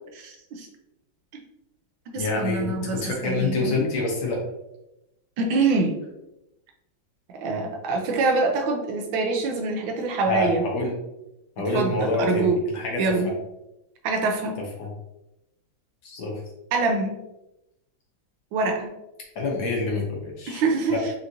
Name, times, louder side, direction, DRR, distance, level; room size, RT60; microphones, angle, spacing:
voice 1, 0.1-0.7 2.1-3.8 5.4-6.0 7.3-10.6 11.7-12.6 13.0-13.3 14.0-14.6 16.7-17.2 18.5-18.9 20.5-21.1, right 3 dB, 80° right, 3 dB, 1.5 m, -25 dB
voice 2, 2.2-4.4 10.3-10.9 11.6-13.1 14.8-14.9 16.0-16.3 19.4-20.6 20.9-21.0, left 2 dB, 70° left, -2 dB, 1.8 m, -27 dB
5.0 x 2.9 x 2.6 m, 0.89 s
omnidirectional pair, 2.2 m